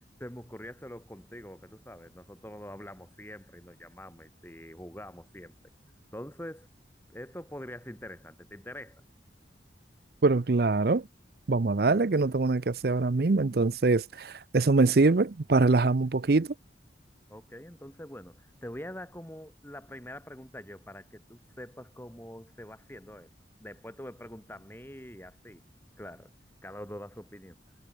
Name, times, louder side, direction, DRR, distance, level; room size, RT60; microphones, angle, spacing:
voice 1, 0.2-5.5 6.1-6.7 7.1-9.0 17.3-23.3 23.6-25.6 26.0-26.3 26.6-27.6, left 1 dB, 10° left, 7.1 m, -44 dB
voice 2, 10.2-11.1 11.5-16.5, right 3 dB, 55° right, 0.6 m, -24 dB
head